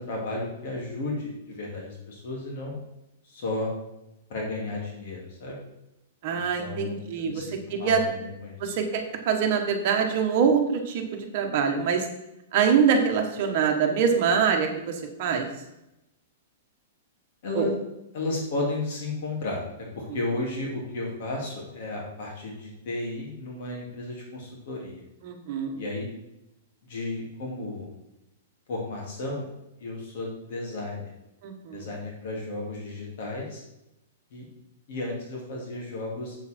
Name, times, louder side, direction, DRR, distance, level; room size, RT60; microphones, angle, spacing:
voice 1, 0.0-2.7 3.2-3.7 4.3-5.6 6.3-8.7 17.4-17.7 18.1-25.0 25.8-26.1 26.8-27.9 28.7-29.4 29.8-31.1 31.7-33.6 34.3-34.5 34.9-36.4, left 2 dB, 50° left, -2 dB, 2.6 m, -33 dB
voice 2, 6.2-8.0 8.6-12.1 12.5-15.5 17.5-17.7 20.1-20.2 25.2-25.8 31.4-31.9, right 6 dB, 40° right, 3 dB, 1.5 m, -24 dB
7.8 x 7.0 x 4.4 m, 0.91 s
hypercardioid pair, 165°, 0 cm